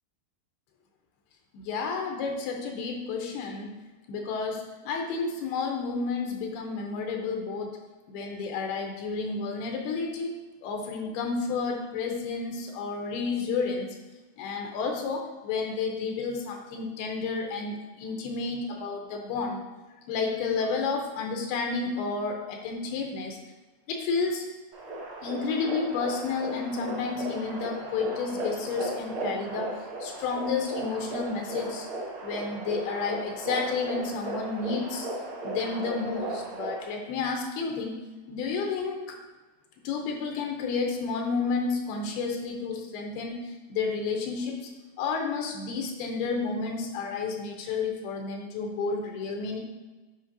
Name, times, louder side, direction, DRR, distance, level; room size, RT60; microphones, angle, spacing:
voice 1, 1.5-3.7 4.1-7.8 8.1-14.0 14.4-19.6 20.1-23.4 23.9-24.4 25.2-31.9 32.2-35.1 35.4-37.9 38.3-39.2 39.8-44.7 45.0-49.6, left 4 dB, 85° left, 2 dB, 2.7 m, -31 dB
sound 1, 24.7-36.9, right 1 dB, 65° right, 1.3 m, -35 dB
8.2 x 5.1 x 2.6 m, 1.2 s
omnidirectional pair, 4.4 m